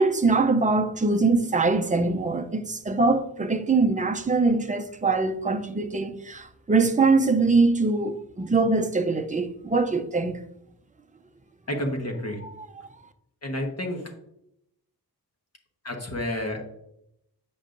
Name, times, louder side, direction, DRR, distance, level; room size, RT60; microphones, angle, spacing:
voice 1, 0.0-10.4 12.4-12.5 12.8-12.9, right 3 dB, 20° right, 0.5 m, -23 dB
voice 2, 11.7-12.4 13.4-14.1 15.8-16.8, left 1 dB, 40° left, 1.2 m, -30 dB
8.5 x 5.4 x 2.5 m
wide cardioid pair, 155°, 38 cm